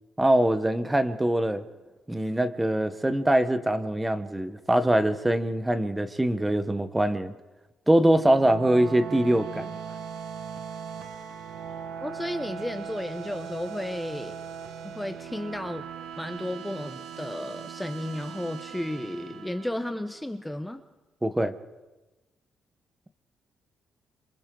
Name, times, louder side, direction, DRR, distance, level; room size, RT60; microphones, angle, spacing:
voice 1, 0.2-1.6 2.1-7.3 7.9-9.8 21.2-21.5, right 1 dB, 10° right, 11 dB, 1.2 m, -23 dB
sound 1, 8.0-20.3, right 7 dB, 90° right, 1.4 m, -39 dB
voice 2, 12.0-14.4 14.8-15.9 16.2-20.8, left 1 dB, 5° left, 8 dB, 1.0 m, -33 dB
28.0 x 26.0 x 3.9 m, 1.1 s
cardioid pair, 90°, 0 cm